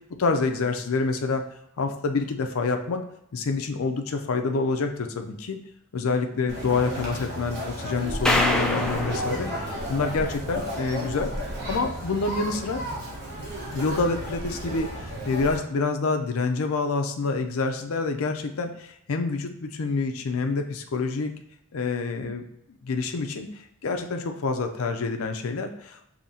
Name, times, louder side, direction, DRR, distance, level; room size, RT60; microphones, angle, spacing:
voice 1, 0.2-1.5 1.8-3.0 3.3-5.6 5.9-9.5 9.9-11.3 11.7-12.8 13.7-21.3 21.7-22.4 22.8-23.5 23.8-26.2, left 4 dB, 75° left, 5 dB, 0.5 m, -27 dB
Conversation, 6.5-15.6, equal, 50° right, 1.1 m, -33 dB
sound 1, 8.2-10.6, left 1 dB, 5° left, 0.3 m, -26 dB
7.0 x 2.8 x 2.7 m, 0.78 s
head